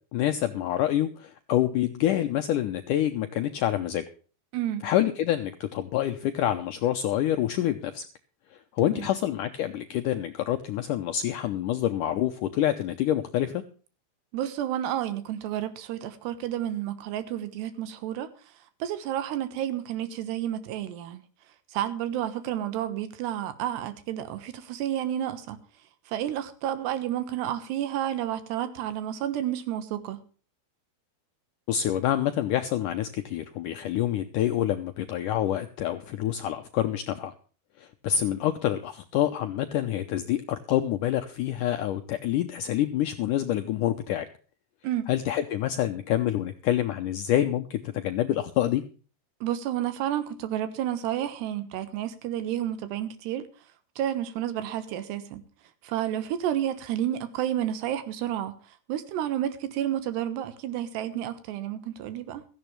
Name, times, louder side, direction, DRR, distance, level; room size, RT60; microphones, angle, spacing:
voice 1, 0.1-4.0 4.8-8.1 8.8-13.6 31.7-37.3 37.8-44.3 45.1-48.8, left 12 dB, 80° left, 1.9 m, -27 dB
voice 2, 4.5-4.8 8.8-9.1 14.3-18.3 18.8-21.2 21.7-25.6 26.1-30.2 44.8-45.0 49.4-53.5 54.0-55.4 55.8-58.6 58.9-62.5, right 11 dB, 85° right, 3.4 m, -30 dB
16.0 x 14.0 x 3.2 m
omnidirectional pair, 4.7 m